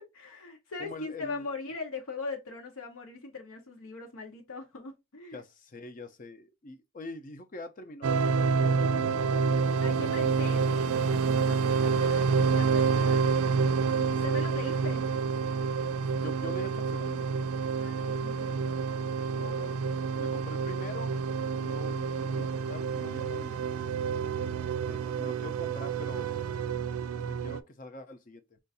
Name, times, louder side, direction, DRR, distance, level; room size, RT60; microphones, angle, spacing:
voice 1, 0.0-5.4 9.8-13.3 14.1-15.1 17.8-18.9, left 3 dB, 80° left, 0.8 m, -41 dB
voice 2, 0.8-1.5 5.3-9.6 13.8-14.4 14.7-14.8 15.8-17.3 19.3-21.2 21.5-23.7 24.6-26.3 27.4-28.6, left 1 dB, 40° left, 0.5 m, -44 dB
sound 1, 8.0-27.6, right 5 dB, 85° right, 0.3 m, -28 dB
4.5 x 2.5 x 2.6 m
head